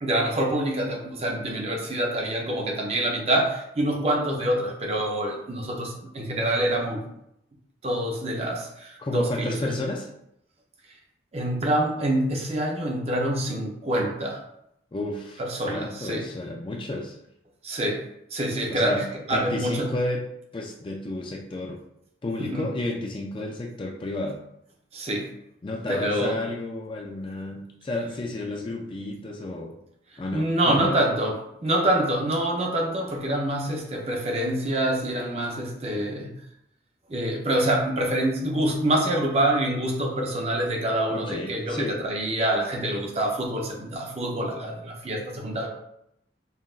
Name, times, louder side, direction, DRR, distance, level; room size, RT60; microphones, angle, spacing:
voice 1, 0.0-7.1 7.8-9.7 11.3-14.4 15.4-16.3 17.6-18.0 18.3-19.9 22.4-22.7 24.9-25.3 25.9-26.4 30.3-36.3 37.1-45.7, right 1 dB, 35° right, 0 dB, 0.6 m, -26 dB
voice 2, 9.0-10.1 14.9-15.4 15.7-17.2 18.7-20.2 20.5-21.8 22.2-24.4 25.6-29.8 30.2-31.0 41.1-42.0, left 2 dB, 25° left, 1 dB, 0.3 m, -31 dB
5.6 x 2.5 x 2.4 m, 0.78 s
head